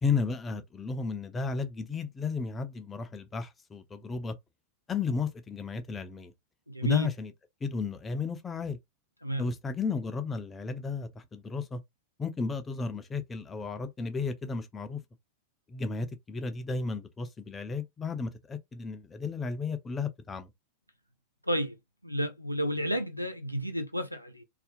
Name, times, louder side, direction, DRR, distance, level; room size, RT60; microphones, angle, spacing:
voice 1, 0.0-4.4 4.9-6.3 6.8-7.3 7.6-8.8 9.4-11.8 12.2-15.0 15.7-20.5, left 4 dB, 20° left, 0.4 m, -33 dB
voice 2, 6.7-7.1 9.2-9.5 21.4-21.8 22.0-24.4, equal, 90° right, 0.4 m, -31 dB
2.4 x 2.0 x 2.5 m
figure-of-eight pair, 90°, 0 cm